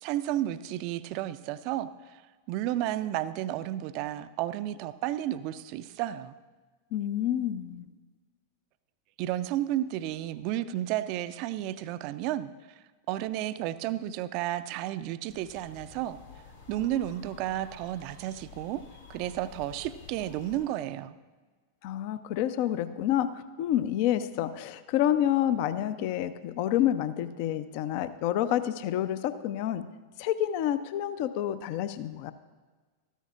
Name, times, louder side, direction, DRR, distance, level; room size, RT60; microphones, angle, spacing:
voice 1, 0.0-2.2 2.5-6.3 9.2-12.5 13.1-16.2 16.7-18.8 19.1-21.2, right 13 dB, 45° right, 14 dB, 0.4 m, -32 dB
voice 2, 6.9-7.9 21.8-29.8 30.2-32.3, left 11 dB, 45° left, 13 dB, 0.5 m, -28 dB
sound 1, 15.3-20.6, left 6 dB, 70° left, 2.5 m, -50 dB
14.5 x 13.5 x 2.4 m, 1.4 s
figure-of-eight pair, 90°, 0 cm